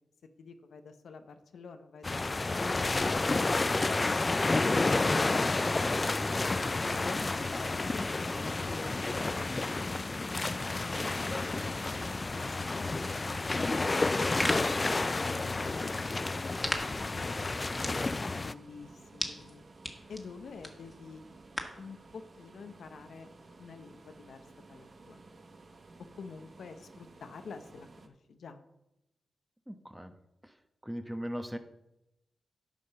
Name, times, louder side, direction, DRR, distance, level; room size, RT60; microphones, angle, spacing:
voice 1, 0.4-4.7 6.8-9.5 9.8-11.3 11.5-12.9 13.9-19.6 20.1-21.2 21.8-23.3 23.6-24.4 24.7-25.2 26.2-28.6, left 5 dB, 80° left, 8 dB, 0.8 m, -49 dB
sound 1, 2.0-18.5, left 3 dB, 35° left, 0.4 m, -30 dB
sound 2, 10.6-28.1, right 3 dB, 55° right, 1.2 m, -55 dB
sound 3, 14.0-21.9, left 1 dB, 10° left, 1.8 m, -40 dB
voice 2, 14.0-14.3 29.7-30.1 30.8-31.6, equal, 5° right, 8 dB, 1.1 m, -40 dB
10.0 x 5.3 x 6.7 m, 0.89 s
cardioid pair, 55°, 0 cm